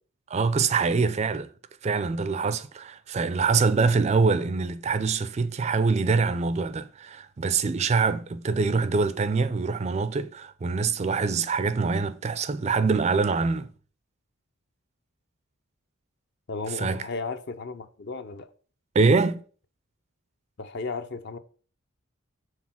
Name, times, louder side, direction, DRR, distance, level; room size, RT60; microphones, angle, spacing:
voice 1, 0.3-1.5 1.8-13.7 16.7-17.1 18.9-19.4, right 4 dB, 30° right, 0.3 m, -24 dB
voice 2, 16.5-18.5 20.6-21.4, left 4 dB, 50° left, 0.5 m, -34 dB
6.3 x 3.8 x 5.8 m
head